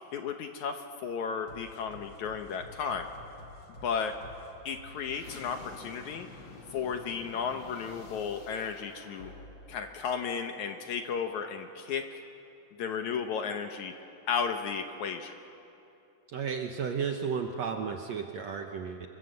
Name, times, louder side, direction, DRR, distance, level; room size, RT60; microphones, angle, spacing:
voice 1, 0.1-3.1 3.8-4.1 4.7-6.3 6.7-9.3 9.7-12.2 12.8-13.9 14.3-15.3, left 6 dB, 65° left, 6 dB, 2.1 m, -34 dB
sound 1, 1.5-10.8, left 2 dB, 40° left, 2.0 m, -50 dB
voice 2, 16.3-19.1, right 6 dB, 65° right, 4 dB, 1.7 m, -33 dB
26.0 x 23.0 x 8.0 m, 2.7 s
omnidirectional pair, 4.2 m